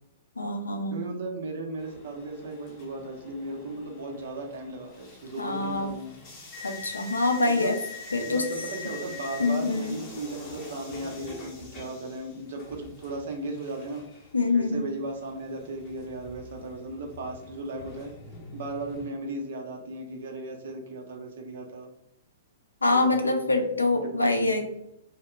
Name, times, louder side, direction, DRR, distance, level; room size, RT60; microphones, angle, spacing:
voice 1, 0.4-1.0 5.4-5.9 6.6-7.8 8.1-8.4 9.4-10.0 14.3-14.8 22.8-24.7, left 2 dB, 75° left, 4 dB, 0.4 m, -25 dB
voice 2, 0.9-6.1 7.4-7.7 8.2-14.1 14.5-18.1 18.5-21.9 22.9-23.8 24.2-24.5, right 2 dB, 55° right, 2 dB, 0.5 m, -36 dB
sound 1, 1.8-19.1, left 4 dB, 30° left, 0.7 m, -44 dB
2.1 x 2.0 x 3.2 m, 0.80 s
figure-of-eight pair, 110°, 0 cm